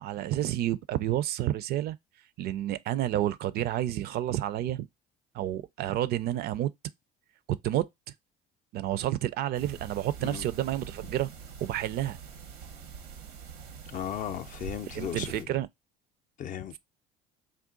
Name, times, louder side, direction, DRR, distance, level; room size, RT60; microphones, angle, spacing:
voice 1, 0.0-2.0 2.4-4.9 5.3-6.7 7.6-7.9 8.7-11.3 11.6-12.2 14.9-15.7, right 13 dB, 55° right, 0.4 m, -30 dB
sound 1, 9.5-15.4, right 6 dB, 85° right, 0.8 m, -45 dB
voice 2, 13.9-15.5 16.4-16.8, left 9 dB, 45° left, 0.5 m, -36 dB
3.6 x 2.3 x 3.7 m
hypercardioid pair, 65°, 19 cm